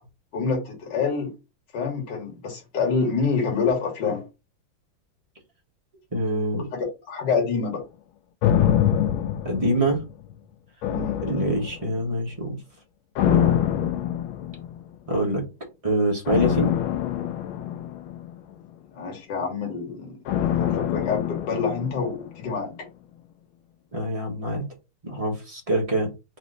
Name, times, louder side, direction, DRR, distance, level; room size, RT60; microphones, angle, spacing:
voice 1, 0.3-1.3 1.7-4.2 6.7-7.8 10.9-11.2 18.9-20.2 20.6-22.7, left 5 dB, 60° left, 1.9 m, -27 dB
voice 2, 6.1-6.7 9.4-10.0 11.2-12.6 13.2-13.6 15.1-15.5 15.8-16.7 23.9-24.6 25.0-26.1, right 1 dB, 20° right, 1.1 m, -25 dB
sound 1, 8.4-10.3 10.8-12.1 13.1-14.9 16.3-18.7 20.3-22.4 22.7-22.8, left 10 dB, 80° left, 1.4 m, -25 dB
4.2 x 3.0 x 3.9 m
omnidirectional pair, 2.2 m